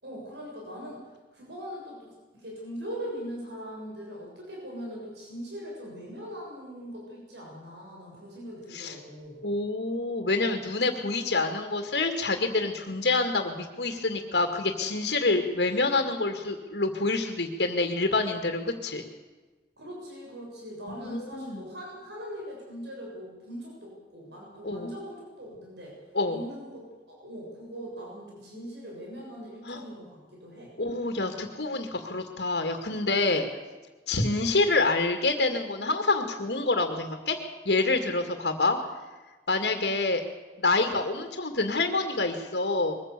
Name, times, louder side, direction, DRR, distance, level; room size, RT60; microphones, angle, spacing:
voice 1, 0.0-1.0 1.3-9.4 19.8-26.0 26.3-30.7, equal, 80° right, -2 dB, 7.0 m, -41 dB
voice 2, 9.4-19.0 21.0-21.6 24.6-24.9 26.1-26.4 29.7-29.8 30.8-33.5 34.1-38.8 39.5-40.2 40.6-42.9, left 3 dB, 80° left, 4 dB, 2.2 m, -27 dB
22.5 x 15.0 x 8.4 m, 1.3 s
head